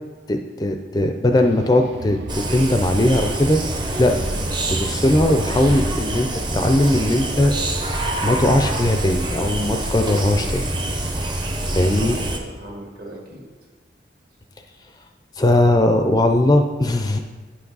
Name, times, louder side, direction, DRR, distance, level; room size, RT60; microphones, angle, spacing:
voice 1, 0.3-3.6 4.0-4.2 4.7-7.5 8.2-10.7 11.7-12.2 15.4-17.2, left 1 dB, 20° left, 5 dB, 0.4 m, -19 dB
sound 1, 1.3-6.4, right 2 dB, 80° right, 0.6 m, -37 dB
sound 2, 2.3-12.4, right 1 dB, 25° right, 0.7 m, -25 dB
voice 2, 11.6-13.4, right 1 dB, 55° right, -1 dB, 1.8 m, -38 dB
9.8 x 6.0 x 4.0 m, 1.4 s
head